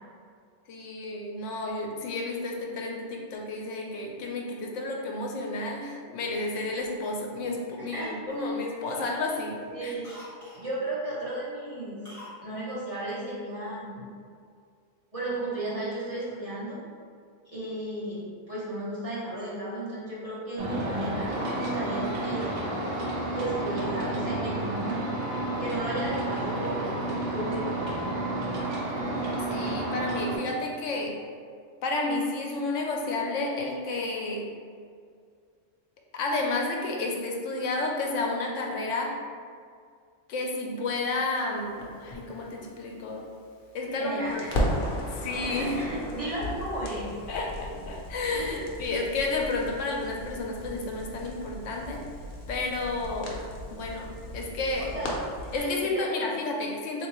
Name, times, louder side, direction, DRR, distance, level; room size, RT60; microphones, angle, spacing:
voice 1, 0.7-10.0 29.5-31.2 31.8-34.5 36.1-39.2 40.3-43.2 43.7-44.4 45.1-45.8 47.3-52.0 52.5-53.4 53.7-54.9 55.5-57.1, left 2 dB, 80° left, 0 dB, 0.9 m, -31 dB
Cough, 6.7-7.9 8.3-8.5 8.9-10.7 12.0-12.4 12.7-12.8, left 1 dB, 20° left, 0.6 m, -48 dB
voice 2, 7.8-8.1 8.4-8.5 9.7-10.1 10.5-12.2 12.4-14.1 15.1-16.8 17.5-18.2 18.5-22.6 23.3-25.1 25.6-27.0 27.3-28.0 44.0-44.5 45.4-47.1 48.3-48.7 54.8-55.1 55.6-56.0, right 1 dB, 35° right, -8 dB, 0.7 m, -34 dB
sound 1, 20.6-30.4, right 1 dB, 75° right, 1.0 m, -31 dB
Crackle, 41.8-43.9 44.3-55.6, equal, 55° left, 0.7 m, -36 dB
3.6 x 2.7 x 2.9 m, 2.2 s
omnidirectional pair, 1.2 m